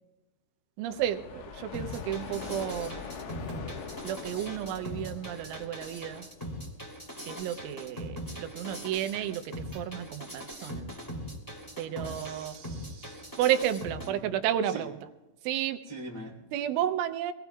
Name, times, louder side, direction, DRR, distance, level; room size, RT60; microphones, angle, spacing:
sound 1, 0.8-6.6, left 6 dB, 85° left, 4.0 m, -43 dB
voice 1, 0.8-3.0 4.0-6.3 7.2-10.8 11.8-12.6 13.4-14.9 15.4-15.8 16.5-17.3, right 11 dB, 80° right, 9 dB, 3.1 m, -32 dB
sound 2, 1.7-14.1, equal, 10° left, 1.3 m, -41 dB
voice 2, 11.9-13.4 14.0-14.9 15.8-16.4, right 2 dB, 60° left, -4 dB, 0.3 m, -44 dB
24.0 x 19.5 x 2.3 m, 1.1 s
omnidirectional pair, 5.6 m